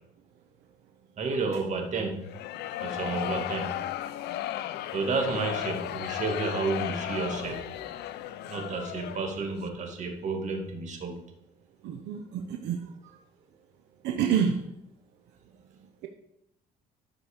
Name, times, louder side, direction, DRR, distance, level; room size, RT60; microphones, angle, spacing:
voice 1, 1.2-2.3 2.8-3.8 4.9-7.8 8.5-11.2, right 3 dB, 45° right, 2 dB, 2.2 m, -31 dB
sound 1, 2.2-9.5, left 13 dB, 80° left, 0.6 m, -35 dB
voice 2, 11.8-12.8 14.0-14.6, right 7 dB, 85° right, 4 dB, 1.0 m, -28 dB
11.5 x 6.2 x 5.1 m, 0.81 s
cardioid pair, 110°, 17 cm